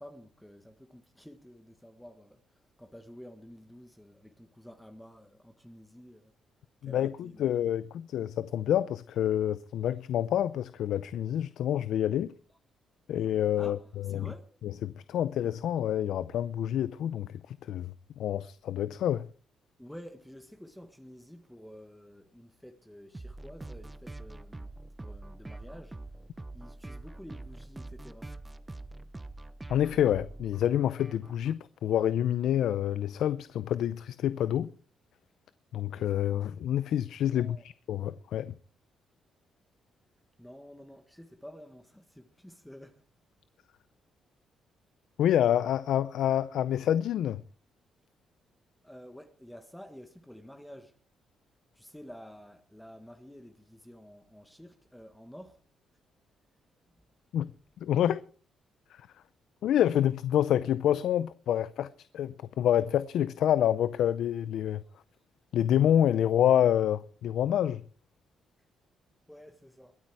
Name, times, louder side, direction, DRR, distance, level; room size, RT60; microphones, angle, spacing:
voice 1, 0.0-6.3 6.8-7.5 13.6-14.4 19.8-26.0 26.5-28.3 37.3-37.6 40.4-43.0 48.8-50.9 51.7-55.6 69.3-70.0, equal, 5° left, 1.6 m, -50 dB
voice 2, 7.4-12.3 13.1-13.8 14.1-14.3 14.8-17.9 18.2-19.3 29.7-34.7 35.7-37.6 37.9-38.5 45.2-47.4 57.3-57.5 57.8-58.2 59.6-61.9 62.1-64.8 65.5-67.8, left 10 dB, 75° left, 0.5 m, -27 dB
sound 1, 23.1-31.5, right 2 dB, 15° right, 1.0 m, -45 dB
22.0 x 9.2 x 4.7 m
cardioid pair, 90°, 0 cm